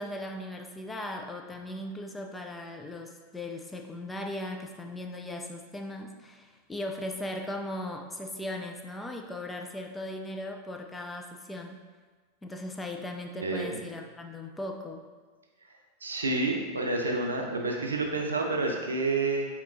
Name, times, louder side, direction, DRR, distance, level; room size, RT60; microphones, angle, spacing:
voice 1, 0.0-11.8 12.4-15.1, left 1 dB, 10° left, 3 dB, 0.4 m, -38 dB
voice 2, 16.0-19.5, right 3 dB, 80° right, 1 dB, 0.5 m, -29 dB
4.6 x 2.8 x 2.6 m, 1.5 s
figure-of-eight pair, 90°, 0 cm